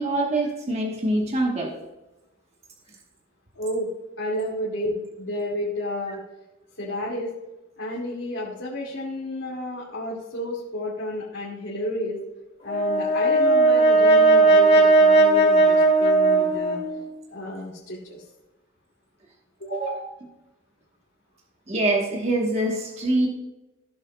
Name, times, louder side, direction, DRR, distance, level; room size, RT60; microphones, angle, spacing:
voice 1, 0.0-1.7 19.7-20.0 21.7-23.3, right 1 dB, 35° right, -1 dB, 1.2 m, -24 dB
voice 2, 3.6-3.9 4.2-6.2 6.8-7.3 7.8-12.2 12.6-16.8 17.3-18.2 19.6-20.0, left 1 dB, 65° left, -5 dB, 2.2 m, -31 dB
Brass instrument, 12.7-17.1, right 2 dB, 30° left, 2.4 m, -17 dB
15.5 x 7.1 x 2.2 m, 1.0 s
head